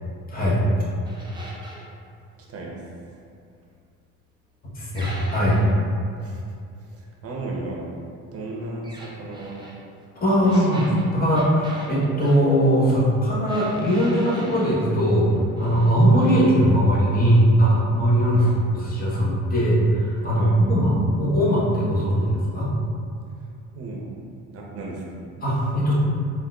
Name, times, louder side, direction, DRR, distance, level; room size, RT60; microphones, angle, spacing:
voice 1, 0.3-0.6 4.7-5.6 10.2-10.8 11.1-15.3 15.6-18.4 18.7-22.7 25.4-25.9, equal, 25° left, -6 dB, 1.0 m, -20 dB
sound 1, 1.0-1.9 4.9-5.8 8.8-9.8 10.4-12.4 13.5-14.8 15.3-15.9 16.2-16.5, equal, 15° right, 0.5 m, -41 dB
voice 2, 2.5-2.9 6.2-6.4 6.9-7.9 8.3-9.6 10.4-11.1 18.3-18.6 20.3-20.6 23.7-24.1 24.5-25.2, right 2 dB, 45° right, -2 dB, 0.7 m, -35 dB
3.8 x 2.5 x 2.3 m, 2.4 s
supercardioid pair, 85°, 33 cm